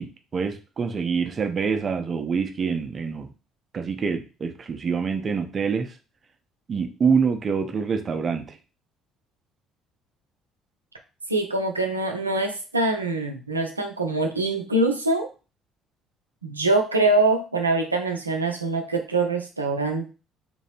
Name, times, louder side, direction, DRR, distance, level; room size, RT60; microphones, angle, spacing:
voice 1, 0.0-3.3 3.7-5.9 6.7-8.6, right 5 dB, 35° right, 6 dB, 0.7 m, -26 dB
voice 2, 11.3-15.3 16.4-20.1, right 2 dB, 85° right, 4 dB, 0.5 m, -24 dB
3.8 x 3.0 x 4.4 m, 0.32 s
figure-of-eight pair, 50°, 0 cm